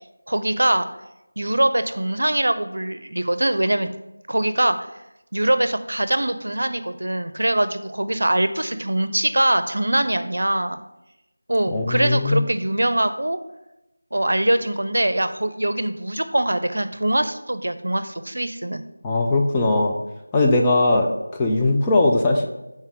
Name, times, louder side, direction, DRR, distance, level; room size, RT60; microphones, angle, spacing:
voice 1, 0.3-0.9 1.4-3.9 4.3-4.8 5.3-10.8 11.5-13.4 14.1-18.8, right 1 dB, 75° right, 11 dB, 0.5 m, -22 dB
voice 2, 11.7-12.5 19.0-20.0 20.3-22.5, left 2 dB, 10° left, 0 dB, 0.3 m, -19 dB
5.8 x 4.4 x 3.7 m, 0.93 s
figure-of-eight pair, 175°, 0 cm